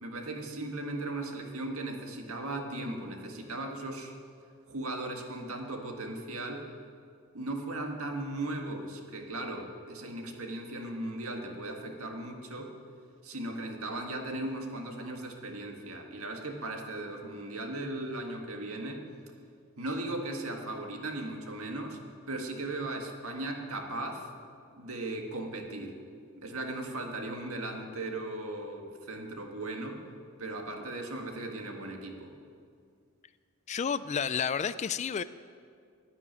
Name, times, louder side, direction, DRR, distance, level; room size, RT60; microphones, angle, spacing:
voice 1, 0.0-4.1 4.7-6.7 7.3-12.7 13.2-19.1 19.8-22.0 22.3-24.3 24.7-26.0 26.4-30.0 30.4-32.3, right 2 dB, 80° right, 3 dB, 1.8 m, -37 dB
voice 2, 33.7-35.2, left 7 dB, 30° left, 14 dB, 0.3 m, -30 dB
11.5 x 9.9 x 9.4 m, 2.2 s
head